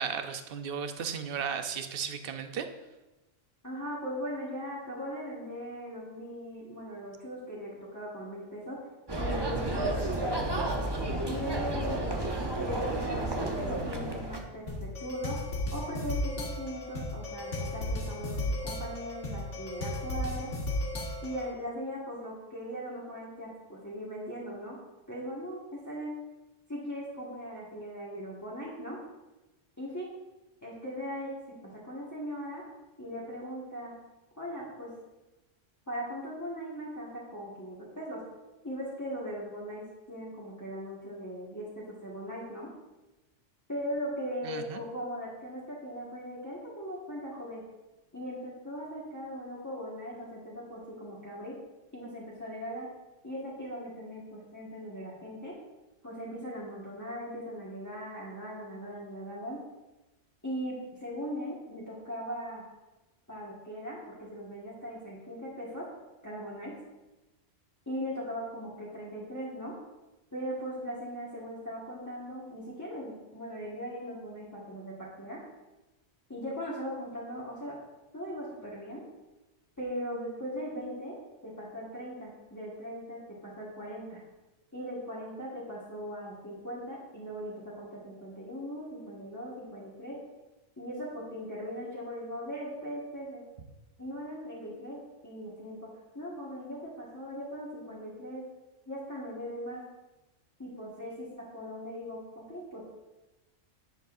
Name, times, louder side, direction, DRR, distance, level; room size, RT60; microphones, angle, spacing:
voice 1, 0.0-2.7 44.4-44.8, right 7 dB, 55° right, 8 dB, 0.8 m, -35 dB
voice 2, 3.6-8.8 9.2-10.6 11.2-12.2 12.6-20.5 21.2-24.8 25.1-26.1 26.7-29.0 29.8-30.1 30.6-31.3 31.8-32.6 33.0-34.0 34.4-34.9 35.9-38.2 38.6-42.7 43.7-47.6 48.1-51.6 51.9-52.9 53.2-55.5 56.0-59.6 60.4-62.6 63.3-65.9 66.2-66.7 67.8-69.8 70.3-75.4 76.3-77.8 78.1-79.0 79.8-81.2 81.4-84.2 84.7-90.2 90.8-93.4 94.0-95.0 95.2-95.9 96.1-98.4 98.9-99.8 100.6-102.8, equal, 15° left, -7 dB, 1.5 m, -39 dB
sound 1, 9.1-14.4, right 1 dB, 25° right, 0.7 m, -31 dB
sound 2, 14.7-21.5, left 1 dB, 75° left, 1.9 m, -35 dB
10.0 x 8.0 x 2.6 m, 1.1 s
omnidirectional pair, 1.3 m